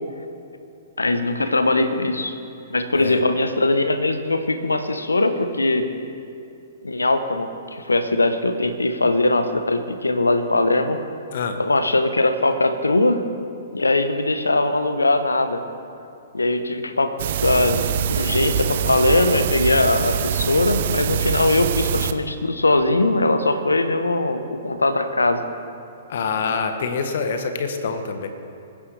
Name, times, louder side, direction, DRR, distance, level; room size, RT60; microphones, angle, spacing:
voice 1, 1.0-2.4 2.7-5.9 6.8-11.0 11.6-13.2 13.7-15.6 16.3-17.1 17.4-25.4, left 2 dB, 85° left, 9 dB, 1.0 m, -20 dB
sound 1, 17.2-22.1, right 8 dB, 55° right, 0.6 m, -24 dB
voice 2, 26.1-28.3, left 5 dB, 60° left, 7 dB, 1.2 m, -25 dB
21.5 x 10.0 x 3.4 m, 2.7 s
figure-of-eight pair, 115°, 0 cm